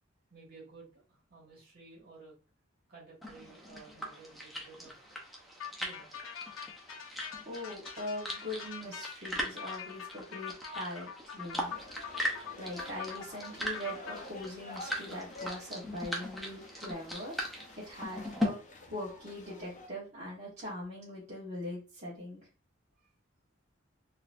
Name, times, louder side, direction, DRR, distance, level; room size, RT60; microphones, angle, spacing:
voice 1, 0.3-2.4 2.9-5.2 5.8-6.2 23.0-23.1, right 3 dB, 50° right, -4 dB, 1.8 m, -54 dB
sound 1, 3.2-18.5, left 1 dB, ahead, 0.7 m, -40 dB
sound 2, 5.6-14.2, left 7 dB, 90° left, 0.7 m, -44 dB
voice 2, 7.4-11.8 12.6-18.6 18.9-22.4, left 1 dB, 35° right, -9 dB, 1.2 m, -41 dB
sound 3, 11.5-19.9, left 2 dB, 40° left, 0.7 m, -50 dB
4.0 x 2.7 x 2.5 m, 0.34 s
head